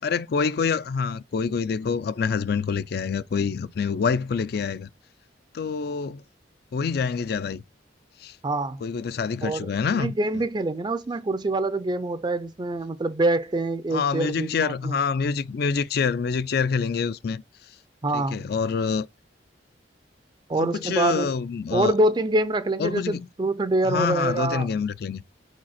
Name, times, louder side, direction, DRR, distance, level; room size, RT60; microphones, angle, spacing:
voice 1, 0.0-4.9 5.5-6.2 6.7-7.6 8.2-8.4 8.8-10.4 13.9-17.4 18.1-19.1 20.5-22.0 22.8-23.3 23.8-25.2, left 5 dB, 55° left, 0.4 m, -26 dB
voice 2, 8.4-8.8 9.4-15.0 18.0-18.4 20.5-21.3 21.7-24.7, right 2 dB, 25° right, 0.4 m, -25 dB
5.1 x 4.1 x 5.7 m
head